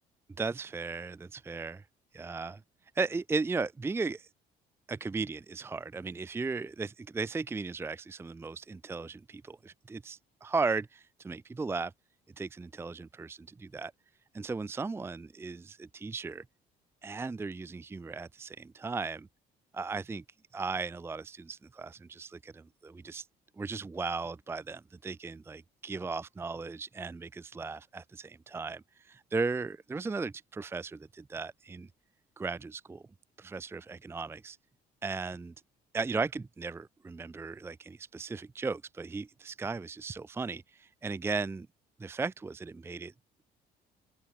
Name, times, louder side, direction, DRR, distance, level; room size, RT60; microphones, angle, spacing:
voice 1, 0.4-1.8 2.1-2.6 3.0-4.3 4.9-11.9 12.4-13.9 14.3-16.4 17.0-19.3 19.7-20.2 20.5-23.3 23.6-31.9 32.4-33.0 33.4-34.6 35.0-35.5 35.9-41.7 42.0-43.1, right 4 dB, 15° right, 0.5 m, -36 dB
open air
cardioid pair, 110°, 17 cm